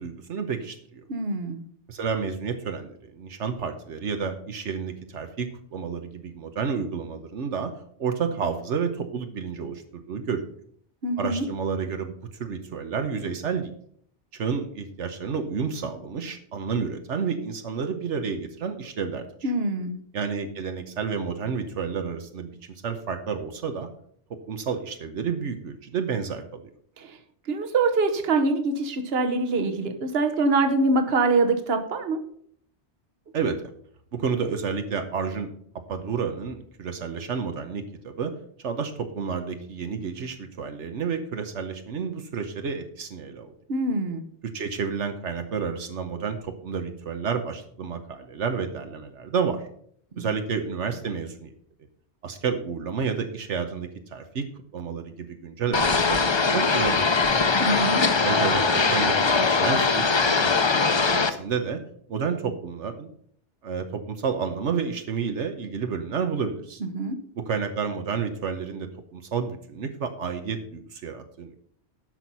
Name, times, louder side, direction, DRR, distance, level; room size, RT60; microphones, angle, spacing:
voice 1, 0.0-1.0 1.9-7.7 8.0-10.5 11.2-12.1 12.4-13.7 14.3-19.5 20.1-22.5 22.8-23.9 24.5-26.4 33.3-33.7 34.1-35.5 35.9-38.3 38.6-43.5 44.5-49.7 50.2-51.5 52.2-54.5 54.7-57.4 58.2-60.6 60.8-61.8 62.1-63.1 63.6-66.8 67.4-71.6, right 6 dB, 80° right, 7 dB, 1.3 m, -30 dB
voice 2, 1.1-1.6 11.0-11.4 19.4-20.0 27.0-27.2 27.5-32.2 43.7-44.3 57.6-58.0 66.9-67.2, right 3 dB, 60° right, 7 dB, 1.3 m, -24 dB
sound 1, 55.7-61.3, left 4 dB, 30° left, 0.6 m, -21 dB
10.5 x 6.1 x 5.5 m, 0.63 s
omnidirectional pair, 1.2 m